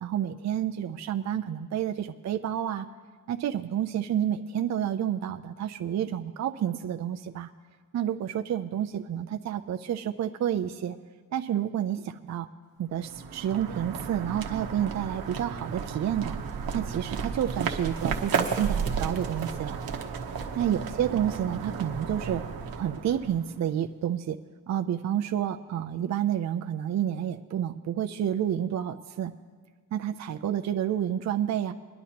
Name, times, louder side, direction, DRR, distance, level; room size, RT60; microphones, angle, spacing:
voice 1, 0.0-2.9 3.3-7.5 7.9-11.0 11.3-12.5 12.8-16.4 16.7-19.8 20.6-22.4 22.7-24.4 24.7-29.3 29.9-31.7, right 10 dB, 50° right, 7 dB, 0.5 m, -29 dB
sound 1, 12.9-23.7, right 6 dB, 75° right, 1.0 m, -33 dB
23.5 x 11.0 x 2.9 m, 1.5 s
wide cardioid pair, 155°, 35 cm